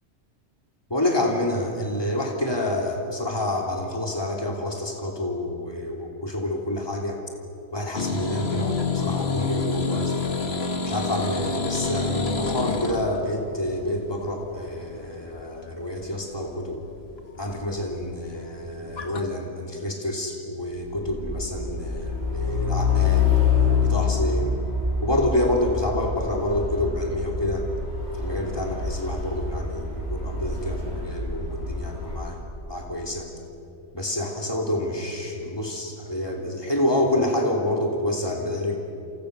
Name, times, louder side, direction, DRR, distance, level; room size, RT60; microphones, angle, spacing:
voice 1, 0.9-7.2 7.7-10.1 10.8-16.8 17.4-23.3 23.8-24.5 25.0-27.7 28.1-32.4 32.7-33.3 33.9-38.8, left 1 dB, 20° left, 0 dB, 3.2 m, -28 dB
sound 1, 7.9-19.2, left 4 dB, 60° left, 1.9 m, -29 dB
Truck, 20.9-32.3, left 5 dB, 45° right, 8.2 m, -26 dB
29.5 x 29.0 x 6.9 m, 2.7 s
omnidirectional pair, 1.2 m